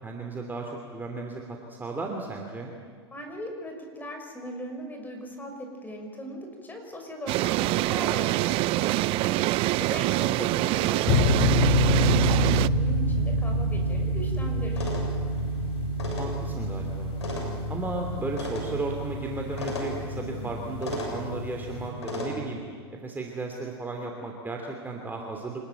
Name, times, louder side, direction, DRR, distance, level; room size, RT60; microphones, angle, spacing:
voice 1, 0.0-2.7 10.2-11.2 16.2-17.1 17.7-22.6 22.9-25.7, right 3 dB, 15° right, 1 dB, 2.9 m, -35 dB
voice 2, 3.1-9.5 9.8-14.9, equal, 10° left, 3 dB, 6.0 m, -39 dB
sound 1, 7.3-12.7, right 18 dB, 40° right, 0.6 m, -25 dB
sound 2, 11.1-21.9, equal, 40° left, 5.7 m, -27 dB
sound 3, 14.7-22.3, left 1 dB, 90° left, 6.9 m, -37 dB
26.0 x 20.5 x 9.2 m, 2.1 s
hypercardioid pair, 110°, 14 cm